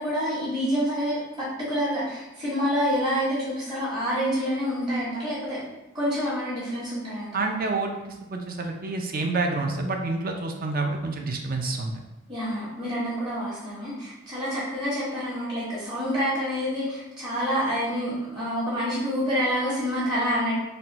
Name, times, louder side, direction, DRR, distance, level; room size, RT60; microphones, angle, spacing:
voice 1, 0.0-5.6 5.9-7.5 12.3-20.5, equal, 20° right, -13 dB, 1.4 m, -27 dB
voice 2, 7.3-7.9 8.3-11.9, right 3 dB, 45° right, 2 dB, 0.5 m, -28 dB
4.2 x 2.2 x 4.2 m, 1.0 s
head